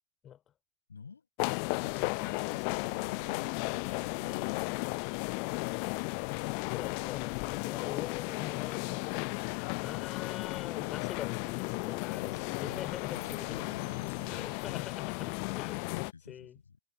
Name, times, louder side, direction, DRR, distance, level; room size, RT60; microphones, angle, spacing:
voice 1, 0.9-1.3 1.7-4.7 12.0-14.8 15.8-16.8, left 5 dB, 75° left, 7.7 m, -49 dB
sound 1, 1.4-16.1, left 40 dB or more, 45° left, 0.6 m, -35 dB
voice 2, 6.6-9.3 9.8-13.7 14.0-16.0 16.3-16.6, left 10 dB, 30° left, 3.1 m, -44 dB
figure-of-eight pair, 90°, 0 cm